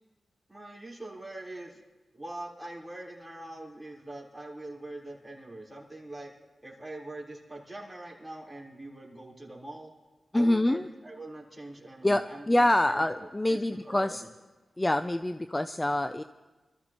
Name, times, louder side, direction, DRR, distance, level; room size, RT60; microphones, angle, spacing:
voice 1, 0.5-1.8 2.1-6.3 6.6-9.9 10.3-13.0 13.5-14.3, right 1 dB, 10° right, -3 dB, 3.8 m, -43 dB
voice 2, 10.3-10.9 12.0-14.2 14.8-16.2, left 1 dB, 20° left, 10 dB, 0.4 m, -26 dB
25.0 x 14.0 x 3.0 m, 1.2 s
cardioid pair, 60°, 0 cm